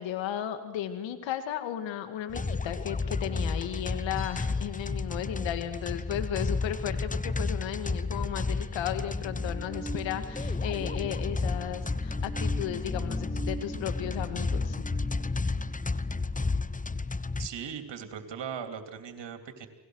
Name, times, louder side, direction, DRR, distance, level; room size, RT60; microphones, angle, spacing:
voice 1, 0.0-14.8, left 11 dB, 85° left, 9 dB, 2.1 m, -35 dB
sound 1, 2.3-17.5, left 3 dB, 20° left, 1.0 m, -32 dB
Bell, 4.2-5.6 5.8-5.9, right 4 dB, 25° right, 7.4 m, -54 dB
sound 2, 8.5-17.5, right 2 dB, ahead, 6.1 m, -44 dB
voice 2, 17.4-19.7, right 7 dB, 70° right, 7 dB, 3.2 m, -39 dB
29.0 x 19.5 x 6.4 m, 1.0 s
supercardioid pair, 45°, 44 cm